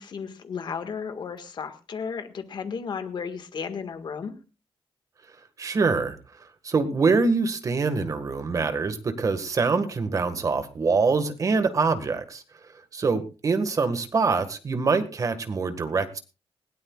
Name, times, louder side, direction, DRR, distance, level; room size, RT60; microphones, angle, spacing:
voice 1, 0.0-4.3, left 6 dB, 50° left, 8 dB, 1.8 m, -34 dB
voice 2, 5.6-12.4 12.9-16.2, right 4 dB, 35° right, 9 dB, 1.7 m, -24 dB
20.0 x 17.0 x 2.4 m, 0.32 s
wide cardioid pair, 175°, 10 cm